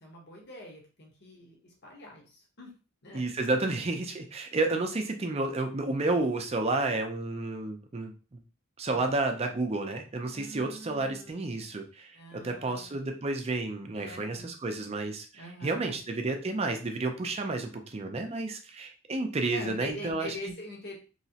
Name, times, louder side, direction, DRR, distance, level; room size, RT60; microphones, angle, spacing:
voice 1, 0.0-2.7 3.0-3.6 4.7-4.8 10.3-11.4 12.1-13.0 13.9-14.5 15.3-16.0 19.5-21.0, left 1 dB, 55° left, -2 dB, 1.1 m, -44 dB
voice 2, 3.1-8.4 8.8-20.3, right 2 dB, 30° right, 4 dB, 0.5 m, -31 dB
3.1 x 3.0 x 2.8 m, 0.35 s
head